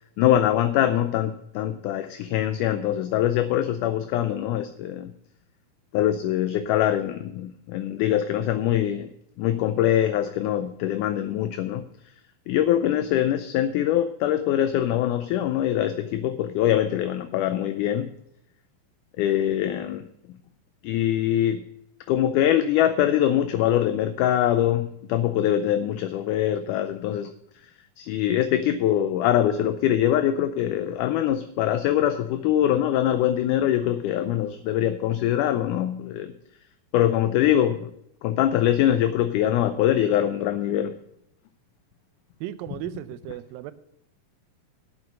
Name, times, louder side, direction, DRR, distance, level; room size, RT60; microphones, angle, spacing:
voice 1, 0.2-5.1 5.9-9.1 9.4-11.9 12.5-18.1 19.2-20.1 20.8-21.6 22.1-27.3 27.6-27.7 28.0-36.3 36.9-37.9 38.2-41.0, left 11 dB, 80° left, 10 dB, 1.9 m, -23 dB
voice 2, 42.4-43.7, right 14 dB, 90° right, 13 dB, 2.4 m, -35 dB
8.2 x 7.8 x 7.7 m, 0.75 s
omnidirectional pair, 4.0 m